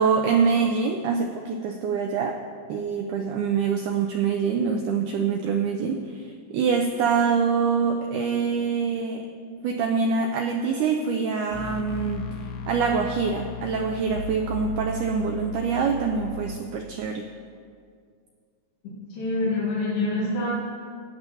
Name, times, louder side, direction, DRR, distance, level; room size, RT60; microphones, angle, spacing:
voice 1, 0.0-2.4 2.7-6.3 6.5-9.3 9.6-12.3 12.7-17.3, right 5 dB, 90° right, 2 dB, 1.8 m, -25 dB
sound 1, 11.5-16.6, left 2 dB, 85° left, 2.6 m, -36 dB
voice 2, 19.1-20.5, left 2 dB, 45° left, -8 dB, 2.4 m, -26 dB
15.0 x 9.2 x 2.8 m, 2.2 s
omnidirectional pair, 4.1 m